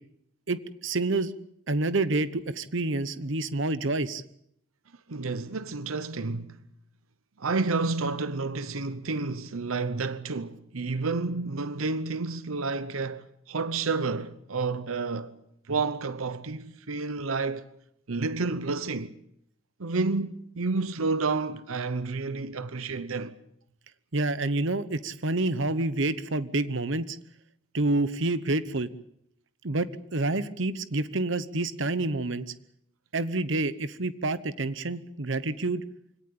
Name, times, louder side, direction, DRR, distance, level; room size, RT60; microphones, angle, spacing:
voice 1, 0.5-1.3 1.7-4.2 24.1-27.2 27.7-28.9 29.6-32.4 33.1-35.8, right 2 dB, 60° right, 1.0 m, -28 dB
voice 2, 5.1-6.6 7.4-15.3 15.7-17.7 18.1-19.1 19.8-23.4, right 3 dB, 85° right, 0.9 m, -30 dB
24.5 x 17.5 x 8.6 m
head